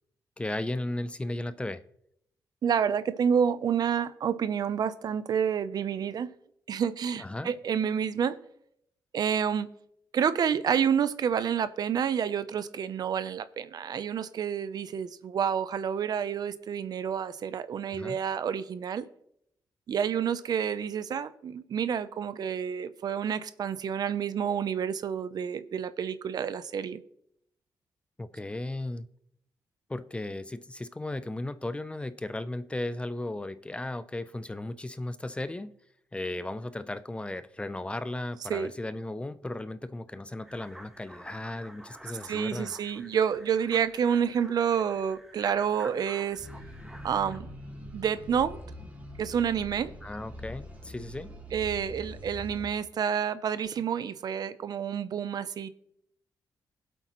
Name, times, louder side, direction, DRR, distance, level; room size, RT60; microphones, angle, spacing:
voice 1, 0.4-1.8 7.2-7.5 17.9-18.2 28.2-29.1 29.9-35.7 36.1-42.7 50.0-51.3, left 2 dB, 15° left, 14 dB, 0.6 m, -35 dB
voice 2, 2.6-6.3 6.7-8.4 9.1-9.7 10.1-19.1 19.9-27.0 38.5-38.7 42.3-46.5 47.0-47.5 47.9-48.6 49.2-49.9 51.5-55.7, right 8 dB, 65° right, 13 dB, 0.7 m, -29 dB
sound 1, 40.5-47.4, right 1 dB, 5° right, 1.3 m, -49 dB
sound 2, 46.4-52.7, left 1 dB, 20° right, 2.5 m, -43 dB
20.5 x 8.1 x 3.1 m, 0.73 s
cardioid pair, 95°, 7 cm